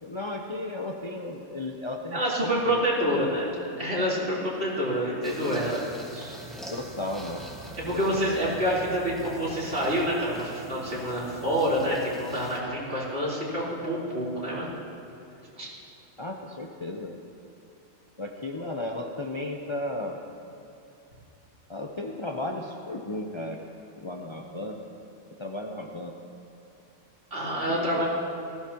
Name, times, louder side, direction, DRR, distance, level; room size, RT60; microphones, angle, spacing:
voice 1, 0.0-3.4 6.1-6.4 6.7-7.5 7.8-8.4 16.2-17.2 18.2-20.2 21.7-23.6 24.0-24.8 25.4-26.2 27.7-28.0, left 2 dB, 30° left, 1 dB, 0.7 m, -35 dB
voice 2, 2.1-3.4 3.8-5.8 7.8-14.7 15.5-15.7 27.3-28.0, equal, 55° right, -8 dB, 4.0 m, -27 dB
sound 1, 5.2-12.6, right 1 dB, ahead, 1.6 m, -43 dB
19.0 x 15.5 x 2.9 m, 2.9 s
omnidirectional pair, 1.2 m